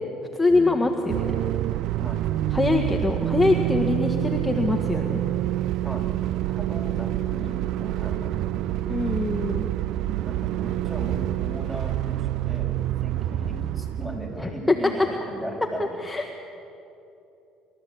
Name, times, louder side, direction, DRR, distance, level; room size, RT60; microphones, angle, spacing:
voice 1, 0.3-1.2 2.5-5.2 8.9-9.7 14.4-14.5 16.0-16.3, left 2 dB, 10° left, 2 dB, 1.6 m, -23 dB
sound 1, 1.1-14.5, right 14 dB, 70° right, 0.4 m, -27 dB
voice 2, 2.0-2.5 5.8-6.1 6.5-8.8 10.3-15.9, equal, 15° right, 0 dB, 6.4 m, -37 dB
28.0 x 13.5 x 8.7 m, 2.9 s
supercardioid pair, 80°, 0 cm